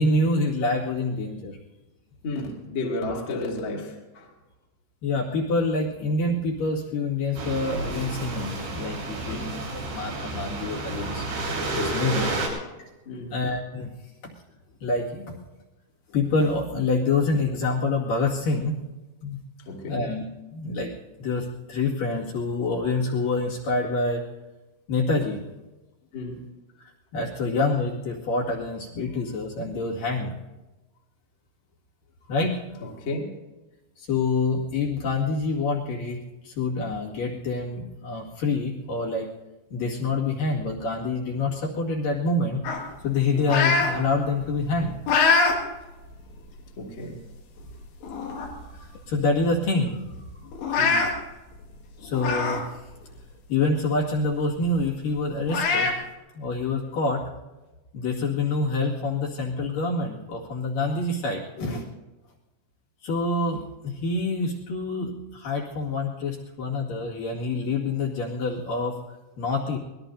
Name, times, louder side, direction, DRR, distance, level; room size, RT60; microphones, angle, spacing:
voice 1, 0.0-1.6 5.0-11.3 11.7-12.3 13.3-13.9 14.2-14.3 14.8-15.4 16.1-18.8 19.2-19.4 19.9-20.2 20.5-20.9 21.2-24.2 24.9-25.4 26.8-30.3 32.3-32.6 34.0-39.3 39.7-42.6 43.0-45.0 48.7-50.0 50.4-50.5 52.0-52.6 53.5-56.0 56.4-57.2 57.9-61.8 63.0-69.0 69.4-69.8, left 3 dB, 55° left, -4 dB, 3.5 m, -26 dB
voice 2, 2.2-4.3 9.3-9.5 12.0-12.3 13.1-13.3 19.7-20.1 26.1-26.5 33.0-33.3 43.3-43.5 46.8-47.2 50.8-51.1 61.6-61.8, left 2 dB, 35° left, -2 dB, 2.5 m, -33 dB
sound 1, 7.4-12.5, right 2 dB, 80° right, 7.0 m, -31 dB
sound 2, 42.6-43.9 44.4-45.6 46.1-46.2 47.1-47.2 47.6-47.7 48.0-48.6 49.0-49.1 49.4-49.5 50.5-51.1 52.1-52.6 53.0-53.1 54.7-54.8 55.5-55.9, left 4 dB, 85° left, 4.3 m, -23 dB
24.5 x 20.0 x 2.7 m, 1.1 s
omnidirectional pair, 4.9 m